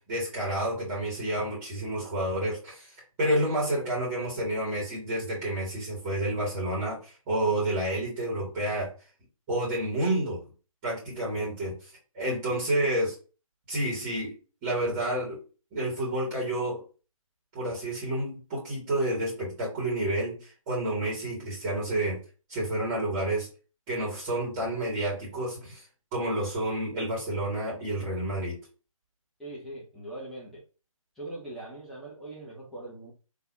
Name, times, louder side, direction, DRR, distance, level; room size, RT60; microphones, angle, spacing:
voice 1, 0.1-2.9 3.2-8.9 9.5-10.4 10.8-11.8 12.1-13.2 13.7-14.3 14.6-15.4 15.7-16.8 17.5-22.2 22.5-23.5 23.9-25.8 26.1-28.6, right 1 dB, 20° right, -6 dB, 2.3 m, -29 dB
voice 2, 29.4-30.6 31.1-33.1, right 1 dB, ahead, -8 dB, 1.2 m, -41 dB
4.0 x 3.5 x 2.9 m, 0.34 s
figure-of-eight pair, 145°, 18 cm